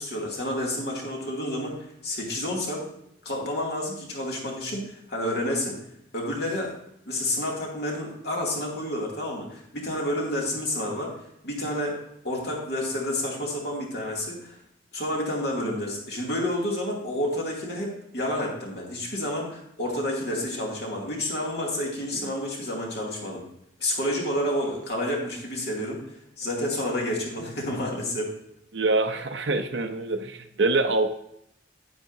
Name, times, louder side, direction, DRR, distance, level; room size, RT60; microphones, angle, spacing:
voice 1, 0.0-2.9 3.2-5.8 6.1-6.8 7.1-11.1 11.4-14.6 14.9-23.4 23.8-28.3, left 1 dB, 60° left, -2 dB, 2.5 m, -30 dB
voice 2, 28.7-31.1, right 2 dB, 90° right, 5 dB, 0.7 m, -25 dB
9.9 x 9.3 x 2.7 m, 0.77 s
head